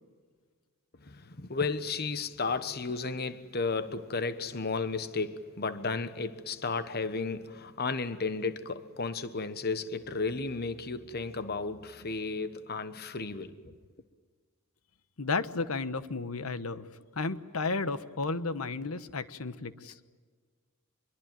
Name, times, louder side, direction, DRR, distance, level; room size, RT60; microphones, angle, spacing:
voice 1, 1.0-13.7, left 4 dB, 50° left, 1.2 m, -33 dB
voice 2, 15.2-16.9 17.1-19.9, left 3 dB, 85° left, 1.2 m, -33 dB
25.0 x 22.5 x 9.2 m
head